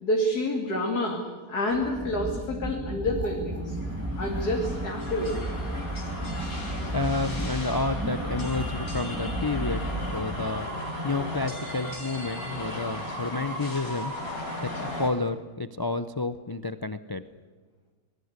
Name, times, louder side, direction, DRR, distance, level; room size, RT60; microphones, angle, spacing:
voice 1, 0.0-3.8 4.2-5.6, left 1 dB, 90° left, 0 dB, 3.4 m, -28 dB
sound 1, 1.7-10.8, right 1 dB, 10° right, 1.6 m, -34 dB
sound 2, 3.6-15.1, left 1 dB, 65° left, 4.9 m, -36 dB
voice 2, 6.7-9.8 10.1-14.2 14.6-17.2, left 3 dB, 35° left, 11 dB, 0.3 m, -30 dB
27.0 x 21.0 x 8.2 m, 1.4 s
omnidirectional pair, 1.6 m